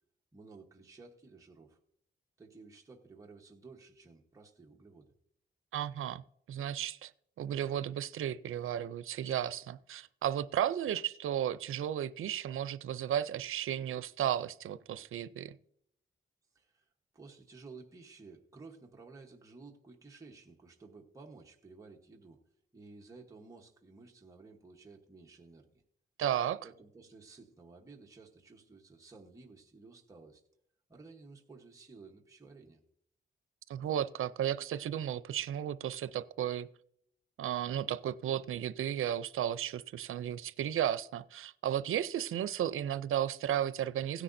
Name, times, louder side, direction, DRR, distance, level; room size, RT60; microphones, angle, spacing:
voice 1, 0.3-1.8 2.4-5.1 16.5-16.9 17.1-22.4 22.7-25.8 26.6-30.4 30.9-32.8, right 3 dB, 15° right, 1.0 m, -54 dB
voice 2, 5.7-6.2 6.5-7.1 7.4-15.6 26.2-26.6 33.7-36.7 37.4-44.2, right 10 dB, 80° right, 0.5 m, -34 dB
16.5 x 10.0 x 2.6 m
wide cardioid pair, 150°, 21 cm